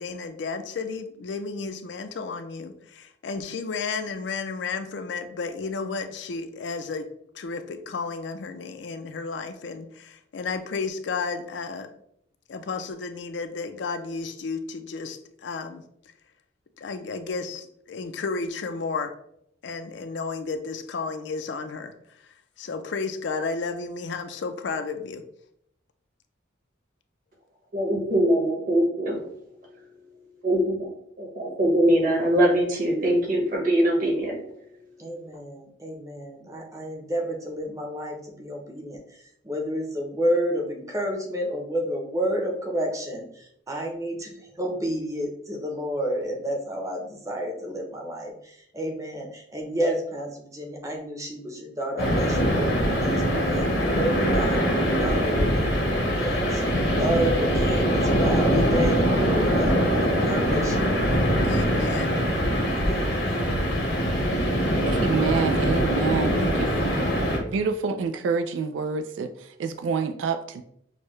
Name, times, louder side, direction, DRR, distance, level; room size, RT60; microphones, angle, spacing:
voice 1, 0.0-7.1 7.3-11.9 12.5-15.8 16.8-19.1 19.6-21.9 22.2-25.2 61.4-62.3, left 4 dB, 65° left, 8 dB, 0.4 m, -32 dB
voice 2, 27.7-29.2 29.6-29.9 30.4-30.9 31.2-34.8, right 1 dB, 50° right, -1 dB, 1.4 m, -23 dB
voice 3, 35.0-54.6 55.0-55.7 56.1-59.8 60.2-61.1 62.8-63.2, equal, 15° right, 1 dB, 0.7 m, -30 dB
sound 1, 52.0-67.4, equal, 85° left, 1.2 m, -23 dB
voice 4, 64.9-67.1 67.5-70.6, right 5 dB, 80° right, 8 dB, 0.3 m, -28 dB
6.4 x 2.1 x 3.1 m, 0.72 s
head